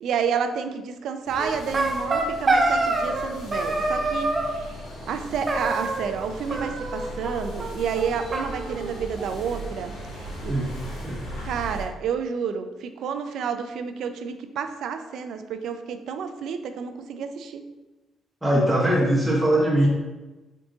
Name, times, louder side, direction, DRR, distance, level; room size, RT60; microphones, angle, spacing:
voice 1, 0.0-4.8 5.1-10.5 11.4-17.6, right 6 dB, 75° right, 8 dB, 0.4 m, -30 dB
sound 1, 1.2-11.8, equal, 80° left, 1.4 m, -38 dB
sound 2, 1.4-3.3 3.5-4.6 5.5-6.2 6.5-7.3 7.6-7.7 8.0-8.1 8.3-9.4, right 2 dB, 30° right, 0.7 m, -25 dB
voice 2, 18.4-19.9, right 1 dB, 10° right, -5 dB, 1.3 m, -21 dB
3.7 x 3.6 x 3.8 m, 1.1 s
cardioid pair, 90°, 0 cm